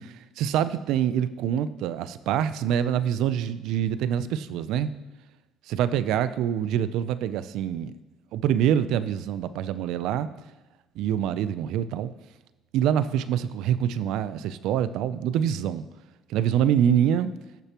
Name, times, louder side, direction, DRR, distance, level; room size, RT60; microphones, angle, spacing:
voice 1, 0.0-4.9 5.7-7.9 8.3-10.3 11.0-12.1 12.7-15.8 16.3-17.3, right 9 dB, 75° right, 14 dB, 0.5 m, -25 dB
16.5 x 6.7 x 3.0 m, 1.1 s
cardioid pair, 105°, 0 cm